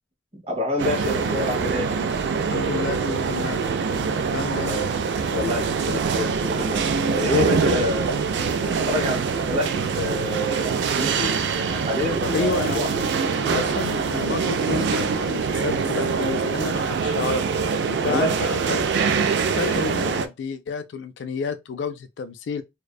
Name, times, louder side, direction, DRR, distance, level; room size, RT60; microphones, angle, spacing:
voice 1, 0.3-1.9 4.5-4.9 5.3-8.1 8.6-12.9 18.0-18.5, left 2 dB, 35° right, 0.9 m, -28 dB
sound 1, 0.8-20.3, right 5 dB, 70° right, 0.3 m, -24 dB
voice 2, 2.5-3.6 4.3-4.8 12.3-13.1 13.4-17.5 17.9-18.8 19.5-22.6, left 4 dB, 70° left, 0.3 m, -30 dB
2.5 x 2.1 x 2.3 m
head